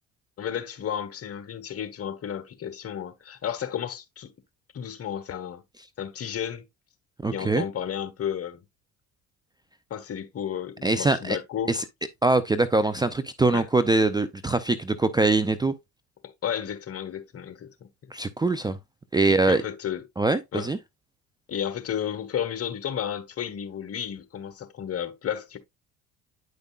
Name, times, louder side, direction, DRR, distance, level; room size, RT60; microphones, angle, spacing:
voice 1, 0.4-4.3 4.7-5.6 6.0-6.6 7.3-8.6 9.9-11.8 13.5-13.7 16.2-17.7 19.2-20.0 20.5-20.7 21.5-25.6, left 9 dB, 45° left, 1.3 m, -32 dB
voice 2, 7.2-7.6 10.8-11.4 11.7-11.8 12.2-15.7 18.1-18.8 19.1-19.6 20.2-20.8, right 3 dB, 10° right, 0.5 m, -23 dB
9.3 x 5.2 x 2.4 m
supercardioid pair, 85°, 34 cm